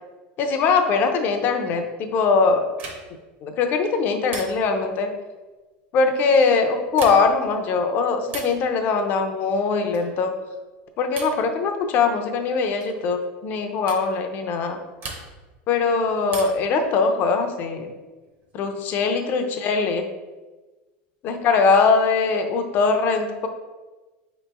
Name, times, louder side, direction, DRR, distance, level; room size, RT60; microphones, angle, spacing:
voice 1, 0.4-2.7 3.4-5.1 5.9-10.3 11.0-14.8 15.7-17.9 18.5-20.1 21.2-23.5, left 4 dB, 40° left, 6 dB, 0.5 m, -21 dB
sound 1, 2.7-3.3 4.3-4.9 6.8-7.5 8.3-8.7 9.9-10.2 11.1-11.5 12.8-13.0 13.9-14.1 15.0-15.5 16.3-16.8 18.2-18.9, right 4 dB, 35° right, 0.7 m, -38 dB
4.5 x 3.0 x 3.4 m, 1.2 s
supercardioid pair, 145°, 5 cm